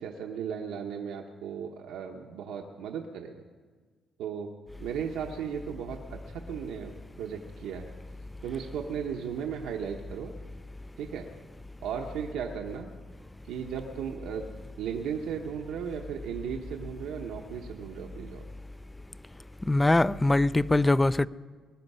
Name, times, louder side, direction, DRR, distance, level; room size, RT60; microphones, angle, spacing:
voice 1, 0.0-3.4 4.2-4.5 4.8-6.9 7.2-7.9 8.4-10.3 11.0-11.3 11.8-12.9 13.5-14.5 14.8-18.5, right 7 dB, 90° right, 1 dB, 0.9 m, -36 dB
voice 2, 19.7-21.3, left 2 dB, 15° left, 18 dB, 0.4 m, -22 dB
21.0 x 11.0 x 5.5 m, 1.5 s
cardioid pair, 90°, 0 cm